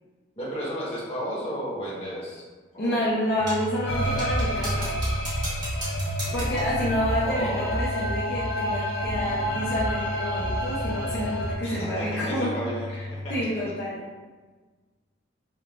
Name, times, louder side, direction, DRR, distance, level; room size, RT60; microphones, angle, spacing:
voice 1, 0.4-2.5 2.7-3.3 7.2-7.7 11.6-13.0 13.2-13.3, equal, 30° left, -7 dB, 1.0 m, -33 dB
voice 2, 2.8-5.0 6.3-12.5 12.9-13.0 13.3-14.1, equal, 55° left, -8 dB, 0.7 m, -29 dB
sound 1, 3.4-13.4, left 1 dB, 75° right, 0.5 m, -36 dB
sound 2, 3.5-3.7 4.2-6.8, right 1 dB, 20° right, 0.9 m, -37 dB
sound 3, 3.9-11.5, equal, 85° left, 1.0 m, -29 dB
5.3 x 2.4 x 2.4 m, 1.3 s
head